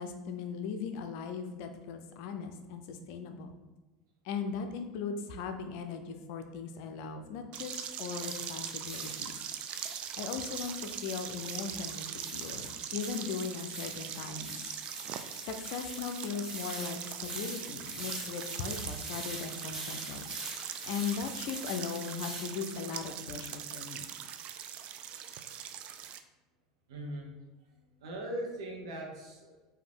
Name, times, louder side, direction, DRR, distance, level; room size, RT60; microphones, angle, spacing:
voice 1, 0.0-3.6 4.2-9.3 10.2-14.6 15.4-20.2 20.8-24.1, left 6 dB, 65° left, 7 dB, 0.5 m, -38 dB
sound 1, 7.5-26.2, right 9 dB, 50° right, 0.3 m, -41 dB
sound 2, 8.1-23.0, right 1 dB, 20° right, 1.2 m, -45 dB
voice 2, 26.9-27.3 28.0-29.7, right 1 dB, 75° right, -1 dB, 1.1 m, -40 dB
3.8 x 2.7 x 3.7 m, 1.2 s
hypercardioid pair, 85°, 3 cm